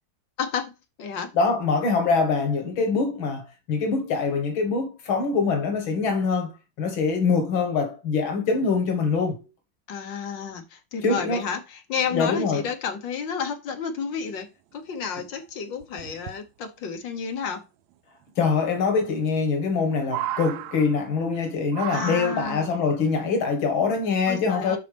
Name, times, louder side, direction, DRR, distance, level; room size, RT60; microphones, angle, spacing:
voice 1, 0.4-0.7 1.0-1.3 9.9-17.6 21.9-22.8 24.3-24.8, left 6 dB, 70° left, 1.7 m, -31 dB
voice 2, 1.3-6.5 6.8-9.5 11.0-11.4 12.1-12.7 18.4-24.8, left 4 dB, 90° left, 2.4 m, -24 dB
sound 1, 14.7-14.8 15.1-15.2 15.8-16.4 17.9-18.0 19.2-19.7 20.0-21.3 21.7-22.7 23.7-23.8, right 12 dB, 80° right, 1.4 m, -34 dB
11.5 x 4.3 x 3.4 m
omnidirectional pair, 2.1 m